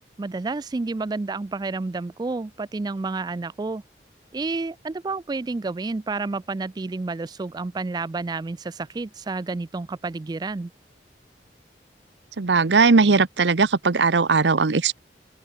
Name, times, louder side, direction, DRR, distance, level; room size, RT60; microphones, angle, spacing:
voice 1, 0.2-3.8 4.3-10.7, right 3 dB, 25° right, 0.3 m, -30 dB
voice 2, 12.4-15.0, right 4 dB, 80° right, 0.8 m, -19 dB
open air
head